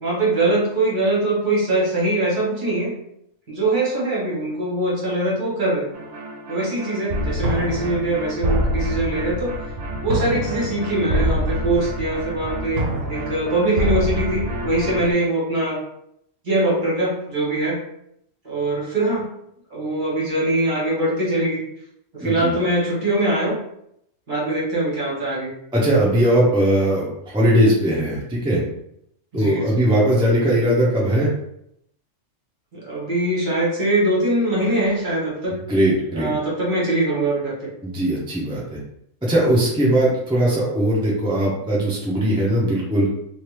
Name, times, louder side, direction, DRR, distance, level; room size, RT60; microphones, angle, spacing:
voice 1, 0.0-2.9 3.5-5.9 6.5-9.6 10.0-12.8 13.1-15.8 16.4-17.8 18.4-19.3 19.7-21.6 22.1-23.6 24.3-25.5 29.3-29.8 32.7-35.6 36.1-37.7, right 1 dB, 40° right, -5 dB, 1.2 m, -22 dB
sound 1, 5.9-15.1, equal, 70° right, 0.9 m, -26 dB
voice 2, 22.2-22.6 25.7-28.6 29.3-31.3 35.5-36.3 37.8-38.8 39.2-43.1, right 1 dB, 5° right, -5 dB, 0.5 m, -19 dB
3.3 x 2.5 x 3.0 m, 0.76 s
omnidirectional pair, 1.4 m